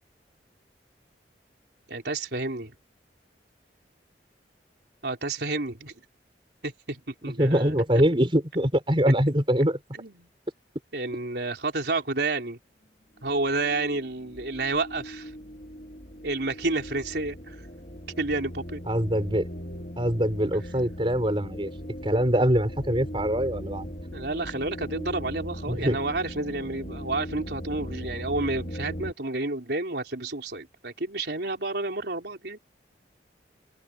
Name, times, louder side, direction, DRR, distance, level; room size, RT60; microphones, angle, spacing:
voice 1, 1.9-2.7 5.0-5.9 6.6-7.7 10.0-10.3 10.9-12.6 13.2-15.3 16.2-17.6 18.2-18.8 24.1-32.6, right 2 dB, 70° right, 3.9 m, -30 dB
voice 2, 7.4-9.8 18.9-19.5 20.0-21.7 22.0-23.9 25.7-26.0, equal, 30° right, 5.9 m, -23 dB
sound 1, 13.2-29.1, equal, 45° left, 4.4 m, -39 dB
head